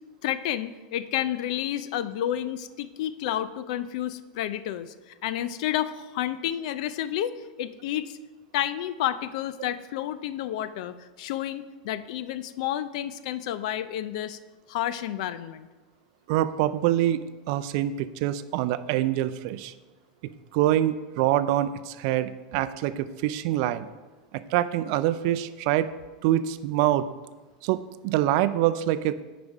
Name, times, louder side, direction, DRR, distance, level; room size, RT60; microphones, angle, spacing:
voice 1, 0.2-4.9 5.2-8.2 8.5-14.4 14.7-15.7, left 11 dB, 65° left, 14 dB, 0.5 m, -30 dB
voice 2, 16.3-19.7 20.2-23.9 24.3-25.9 26.2-27.1 27.6-29.2, right 13 dB, 55° right, 13 dB, 0.4 m, -25 dB
9.6 x 5.1 x 4.8 m, 1.2 s
supercardioid pair, 140°, 4 cm